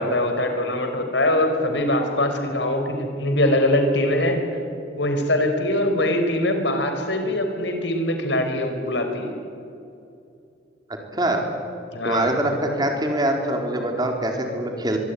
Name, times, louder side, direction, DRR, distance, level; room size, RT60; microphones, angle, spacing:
voice 1, 0.0-4.4 5.0-9.3 11.9-12.3, left 1 dB, 75° left, 5 dB, 4.6 m, -22 dB
voice 2, 11.1-11.4 12.0-15.0, right 1 dB, 20° right, 3 dB, 4.1 m, -23 dB
24.5 x 23.5 x 9.7 m, 2.6 s
head